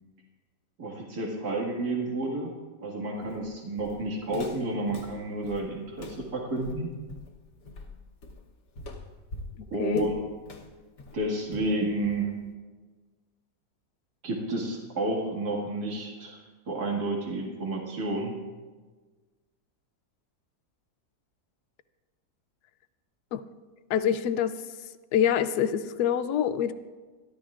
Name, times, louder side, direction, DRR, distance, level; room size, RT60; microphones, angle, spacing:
voice 1, 0.8-2.5 2.8-6.9 9.7-10.1 11.1-12.3 14.2-16.4 16.7-18.3, right 2 dB, 70° right, -2 dB, 2.5 m, -30 dB
Walk footsteps, 3.2-12.5, left 2 dB, 60° left, 1.5 m, -44 dB
voice 2, 9.6-10.1 23.3-23.4 23.9-24.5 25.1-26.7, left 9 dB, 80° left, 12 dB, 1.2 m, -26 dB
26.5 x 11.5 x 2.5 m, 1.4 s
omnidirectional pair, 1.7 m